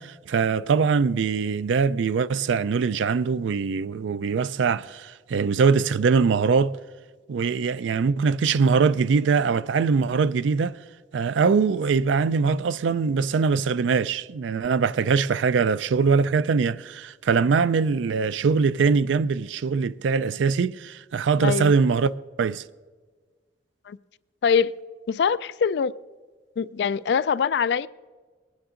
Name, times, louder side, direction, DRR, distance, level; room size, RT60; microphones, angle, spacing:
voice 1, 0.0-6.8 7.3-10.8 11.1-22.1 22.4-22.6, right 5 dB, 85° right, 0.4 m, -22 dB
voice 2, 21.4-21.7 23.9-24.0 24.4-24.7 25.1-25.9 26.6-27.9, left 6 dB, 65° left, 0.3 m, -23 dB
20.0 x 9.5 x 3.7 m
head